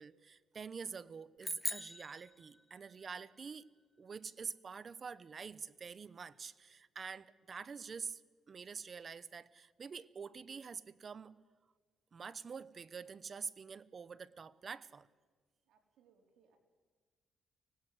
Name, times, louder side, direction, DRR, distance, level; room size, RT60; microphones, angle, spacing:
voice 1, 0.0-3.6 4.0-8.2 8.5-11.4 12.1-15.1, right 5 dB, 40° right, 17 dB, 0.9 m, -46 dB
sound 1, 1.4-3.1, left 1 dB, 10° left, 0.7 m, -42 dB
voice 2, 15.6-16.6, right 6 dB, 75° right, 2 dB, 4.4 m, -70 dB
24.5 x 19.5 x 7.8 m, 1.5 s
cardioid pair, 90°, 0 cm